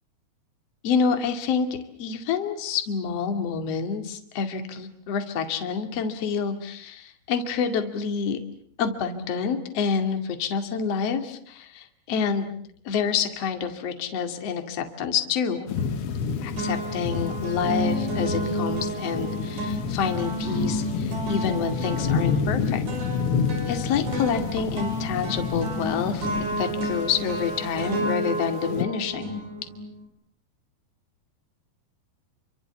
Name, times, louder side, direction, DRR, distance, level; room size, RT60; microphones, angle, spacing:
voice 1, 0.8-1.7 2.0-8.4 8.8-12.5 12.8-15.7 16.4-22.8 23.7-26.3 26.6-29.4, left 6 dB, 45° left, 7 dB, 2.9 m, -28 dB
sound 1, 15.7-28.9, left 6 dB, 90° left, 1.2 m, -30 dB
sound 2, 15.8-16.2 16.6-30.0, equal, 75° right, 8.9 m, -31 dB
29.5 x 25.0 x 7.1 m, 0.63 s
omnidirectional pair, 4.9 m